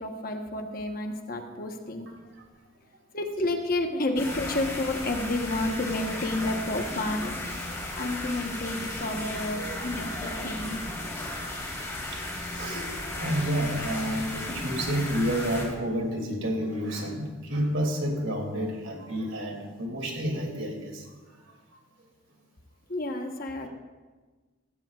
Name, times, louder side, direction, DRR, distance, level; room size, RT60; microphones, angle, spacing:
voice 1, 0.0-2.1 3.1-10.8 22.9-23.7, left 2 dB, 45° left, 4 dB, 1.1 m, -30 dB
sound 1, 4.2-15.7, left 1 dB, 15° left, 2.3 m, -35 dB
voice 2, 9.5-10.5 11.3-11.4 12.5-21.0, equal, 70° right, 1 dB, 2.6 m, -30 dB
16.5 x 16.0 x 2.4 m, 1.4 s
head